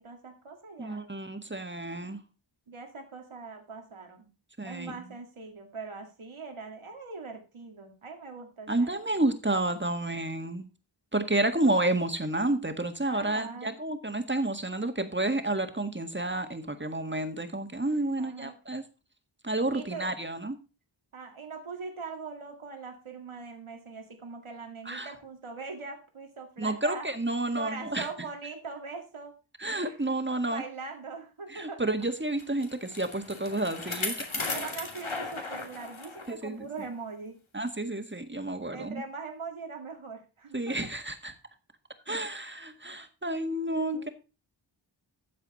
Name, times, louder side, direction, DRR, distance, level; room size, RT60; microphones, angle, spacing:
voice 1, 0.0-1.0 2.7-4.3 4.6-9.1 13.1-13.8 18.2-18.5 19.7-20.1 21.1-27.1 27.5-29.3 29.8-30.0 30.5-31.8 34.4-37.4 38.7-40.8 43.9-44.1, right 4 dB, 90° right, 3 dB, 2.2 m, -41 dB
voice 2, 0.8-2.2 4.6-4.9 8.7-10.7 11.1-18.8 19.4-20.6 24.9-25.1 26.6-28.1 29.6-30.6 31.5-34.4 36.3-36.7 37.5-39.0 40.5-41.3 42.1-44.1, right 2 dB, 25° right, 7 dB, 1.8 m, -30 dB
Bicycle, 32.4-36.3 36.8-36.9 37.7-37.8, left 3 dB, 75° left, 2.6 m, -36 dB
13.5 x 7.4 x 4.2 m, 0.31 s
wide cardioid pair, 60°, 48 cm